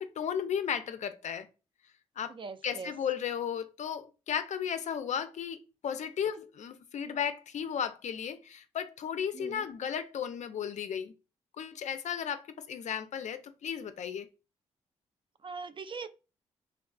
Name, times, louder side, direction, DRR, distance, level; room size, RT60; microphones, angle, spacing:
voice 1, 0.0-1.5 2.2-2.3 2.6-11.1 11.6-14.3, left 8 dB, 55° left, 0.4 m, -35 dB
voice 2, 2.3-2.9 6.3-6.4 9.3-9.7 15.4-16.1, right 5 dB, 35° right, 0.3 m, -41 dB
3.5 x 2.3 x 2.2 m
hypercardioid pair, 45°, 14 cm